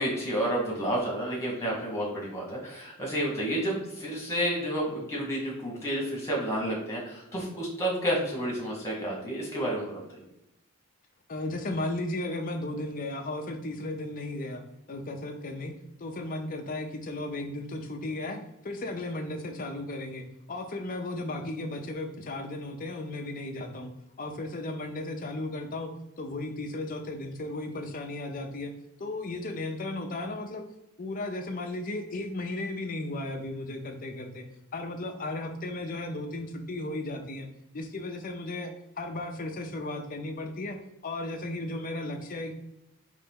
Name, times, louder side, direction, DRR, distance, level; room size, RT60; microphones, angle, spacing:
voice 1, 0.0-10.2, right 1 dB, 15° left, -3 dB, 1.6 m, -30 dB
voice 2, 11.3-14.6 14.9-15.7 16.0-18.4 18.6-23.9 24.2-25.9 26.2-28.7 29.0-30.6 31.0-34.5 34.7-37.5 37.7-38.7 39.0-40.8 41.0-42.5, left 2 dB, 40° left, 4 dB, 0.6 m, -35 dB
4.0 x 3.3 x 3.7 m, 0.85 s
head